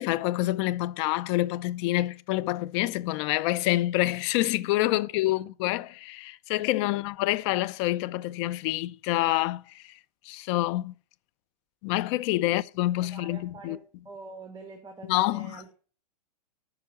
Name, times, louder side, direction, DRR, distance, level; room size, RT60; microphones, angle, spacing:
voice 1, 0.0-10.0 10.2-10.9 11.8-13.8 15.1-15.6, left 17 dB, 45° left, 0.7 m, -27 dB
voice 2, 4.9-5.3 6.8-7.1 12.4-12.5 13.0-15.8, right 4 dB, 20° right, 2.0 m, -46 dB
9.9 x 6.3 x 8.4 m
hypercardioid pair, 115°, 21 cm